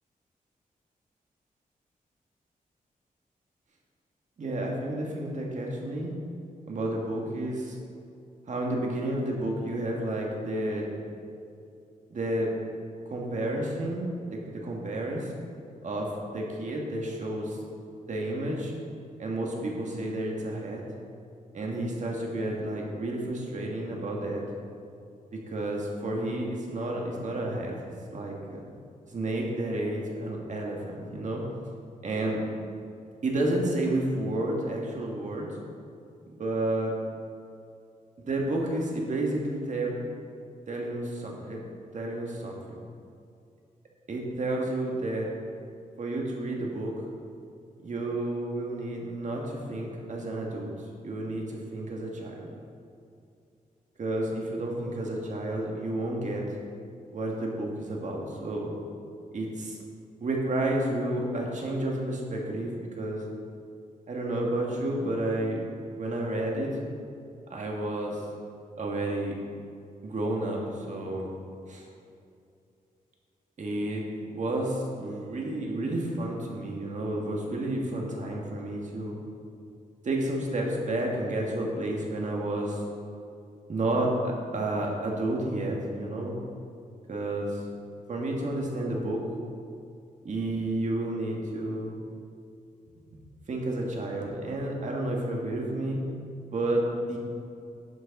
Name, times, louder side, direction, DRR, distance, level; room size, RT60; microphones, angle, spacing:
voice 1, 4.4-6.1 6.7-7.8 8.5-10.9 12.1-12.5 13.1-15.3 15.8-17.6 18.1-18.7 19.2-20.8 21.5-24.4 25.3-27.8 28.1-28.6 29.1-31.4 32.0-32.4 33.2-35.5 36.3-37.0 38.2-40.0 40.7-41.6 41.9-42.8 44.1-45.3 46.0-46.9 47.8-50.7 51.0-52.5 54.0-56.4 57.1-58.7 59.3-59.8 60.2-63.2 64.1-65.6 66.0-66.7 67.5-68.2 68.8-69.4 70.0-71.3 71.7-71.9 73.6-79.2 80.0-82.8 83.7-86.4 87.1-87.6 88.1-89.2 90.2-91.9 93.5-96.0 96.5-97.2, right 1 dB, 55° right, -1 dB, 1.8 m, -31 dB
11.0 x 6.5 x 5.4 m, 2.5 s
wide cardioid pair, 135°, 15 cm